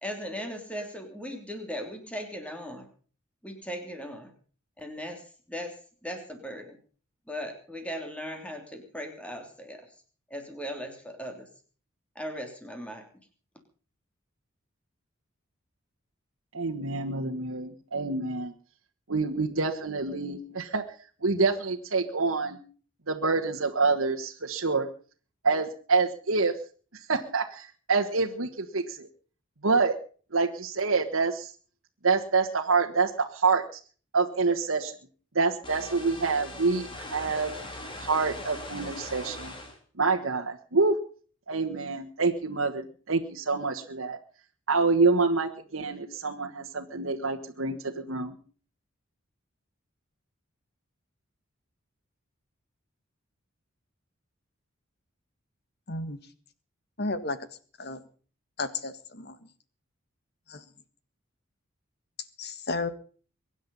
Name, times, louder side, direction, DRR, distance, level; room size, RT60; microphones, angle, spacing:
voice 1, 0.0-2.9 3.4-4.3 4.8-5.7 6.0-6.8 7.3-9.8 10.3-11.5 12.1-13.0, equal, 5° left, 4 dB, 3.1 m, -38 dB
voice 2, 16.5-18.5 19.1-20.8 21.2-22.6 23.1-24.9 25.4-26.5 27.1-29.1 29.6-29.9 30.3-31.5 32.0-33.8 34.1-34.9 35.3-37.5 38.0-39.5 40.0-41.0 41.5-44.2 44.7-48.4, right 4 dB, 90° right, 1 dB, 1.5 m, -27 dB
sound 1, 35.6-39.8, left 1 dB, 25° left, 3.1 m, -40 dB
voice 3, 55.9-56.2 57.0-57.4 57.8-58.0 58.6-59.4 60.5-60.6 62.4-62.9, left 3 dB, 50° left, 12 dB, 1.6 m, -32 dB
23.5 x 10.0 x 5.4 m, 0.42 s
head